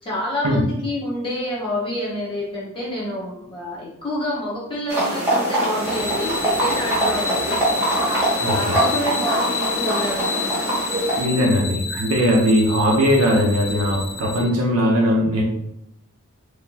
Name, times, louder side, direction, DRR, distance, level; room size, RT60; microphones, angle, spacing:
voice 1, 0.0-7.6 8.4-11.6, left 1 dB, 25° left, -5 dB, 0.7 m, -28 dB
sound 1, 4.9-11.2, right 1 dB, 10° right, 1.5 m, -23 dB
sound 2, 5.7-14.4, left 4 dB, 65° left, 0.8 m, -30 dB
voice 2, 8.4-8.8 11.2-15.4, equal, 85° right, -3 dB, 0.7 m, -19 dB
4.0 x 2.8 x 2.8 m, 0.79 s
head